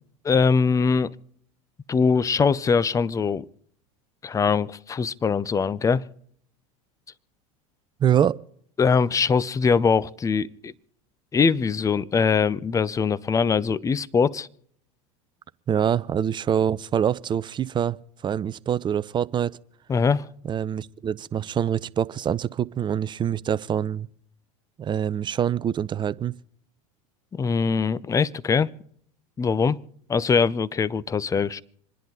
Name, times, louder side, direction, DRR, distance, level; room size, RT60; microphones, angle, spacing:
voice 1, 0.2-1.1 1.9-3.5 4.2-6.0 8.8-10.7 11.3-14.5 19.9-20.3 27.3-28.7 29.4-29.8 30.1-31.6, left 5 dB, 20° left, 0.6 m, -22 dB
voice 2, 8.0-8.4 15.7-18.0 18.2-19.6 20.5-24.1 24.8-26.3, right 9 dB, 25° right, 0.6 m, -25 dB
27.0 x 10.5 x 3.9 m
supercardioid pair, 105°, 17 cm